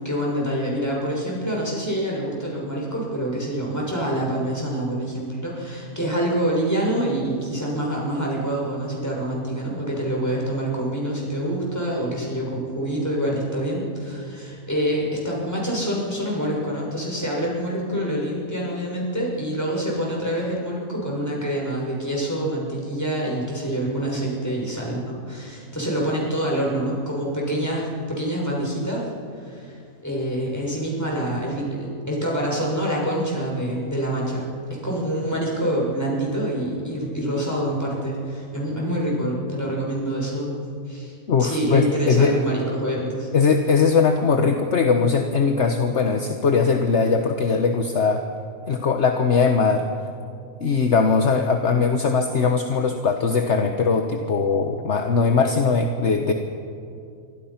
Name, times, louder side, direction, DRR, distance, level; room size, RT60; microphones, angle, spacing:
voice 1, 0.0-29.8 30.0-40.6 40.9-41.1 41.4-43.3, right 1 dB, 10° left, -3 dB, 6.7 m, -26 dB
voice 2, 41.3-42.3 43.3-48.2 48.7-49.9 50.6-56.3, left 5 dB, 55° left, 5 dB, 1.4 m, -20 dB
28.0 x 24.5 x 5.9 m, 2.5 s
omnidirectional pair, 1.5 m